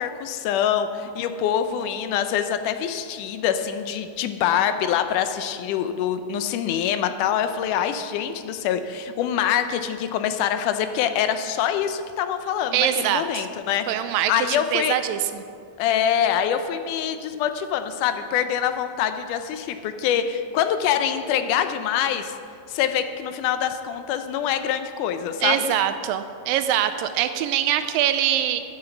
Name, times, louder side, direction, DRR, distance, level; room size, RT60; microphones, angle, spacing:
voice 1, 0.0-13.9 14.3-15.0 15.8-22.3 22.7-25.7, left 9 dB, 75° left, 9 dB, 2.0 m, -25 dB
voice 2, 12.7-13.5 13.9-15.4 25.4-28.6, right 11 dB, 80° right, 10 dB, 2.2 m, -23 dB
11.0 x 9.7 x 7.0 m, 2.4 s
omnidirectional pair, 4.1 m